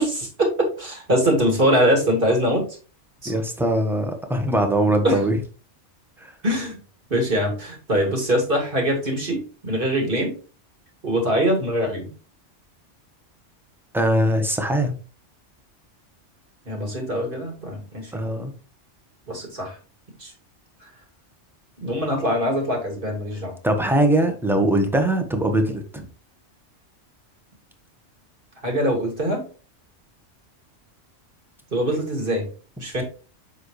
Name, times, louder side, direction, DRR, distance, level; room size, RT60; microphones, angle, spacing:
voice 1, 0.0-2.6 3.2-3.3 5.0-5.2 6.4-6.7 7.1-10.3 11.0-12.1 16.7-18.3 19.3-19.7 20.2-20.3 21.8-23.5 28.6-29.4 31.7-32.5 32.8-33.0, equal, 45° right, 1 dB, 2.6 m, -23 dB
voice 2, 3.2-5.4 6.2-6.3 13.9-15.0 18.1-18.5 23.6-26.1, right 1 dB, ahead, 5 dB, 1.1 m, -21 dB
7.5 x 5.6 x 3.2 m, 0.35 s
omnidirectional pair, 1.3 m